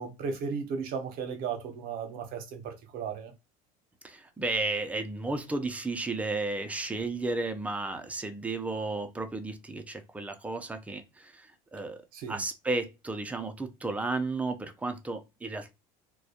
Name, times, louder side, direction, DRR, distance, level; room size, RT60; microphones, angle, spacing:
voice 1, 0.0-3.3 12.1-12.4, right 6 dB, 55° right, 0.7 m, -35 dB
voice 2, 4.0-12.0 12.3-15.7, right 3 dB, 10° right, 0.4 m, -33 dB
2.2 x 2.1 x 2.7 m
supercardioid pair, 120°, 18 cm